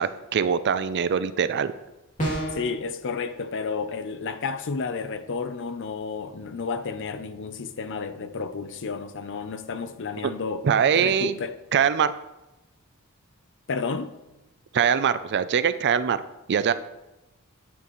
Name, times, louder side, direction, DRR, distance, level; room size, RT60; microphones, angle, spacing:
voice 1, 0.0-1.7 10.2-10.3 10.6-11.4 11.7-12.1 14.7-16.2 16.5-16.7, right 7 dB, 50° right, 0.4 m, -22 dB
sound 1, 2.2-2.7, right 1 dB, 35° left, 2.6 m, -27 dB
voice 2, 2.5-10.7 10.9-11.6 13.7-14.1, left 4 dB, 55° left, 0.6 m, -31 dB
9.5 x 8.6 x 3.1 m
head